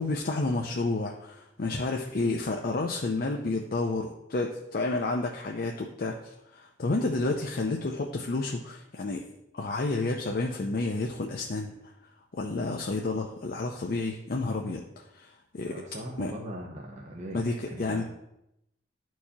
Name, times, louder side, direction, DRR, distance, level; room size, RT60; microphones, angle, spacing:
voice 1, 0.0-9.2 9.5-11.7 12.3-14.8 15.1-15.7 16.2-16.3 17.3-18.0, left 3 dB, 55° left, 1 dB, 0.5 m, -30 dB
voice 2, 15.7-18.0, right 1 dB, 40° right, -1 dB, 0.8 m, -40 dB
11.5 x 4.6 x 2.8 m, 0.84 s
head